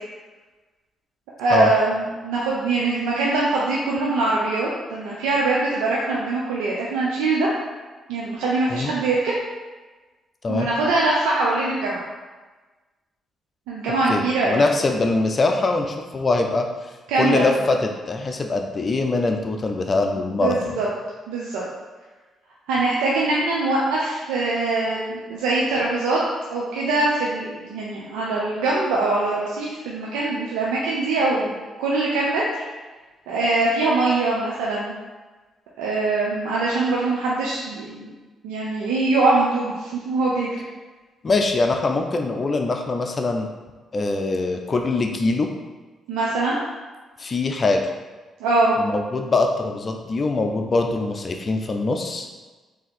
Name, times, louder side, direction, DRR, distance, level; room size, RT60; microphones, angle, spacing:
voice 1, 1.4-7.5 8.1-9.3 10.5-12.0 13.7-14.6 17.1-17.4 20.1-20.9 21.3-21.6 22.7-26.2 26.5-32.6 33.3-34.9 35.8-38.1 38.4-40.5 46.1-46.6 48.4-48.7, right 3 dB, 85° right, -5 dB, 0.6 m, -23 dB
voice 2, 14.1-16.7 17.1-20.6 41.2-43.5 43.9-45.5 47.2-47.8 48.8-52.3, left 3 dB, 45° left, 4 dB, 0.6 m, -23 dB
3.7 x 2.8 x 4.2 m, 1.3 s
supercardioid pair, 55°, 0 cm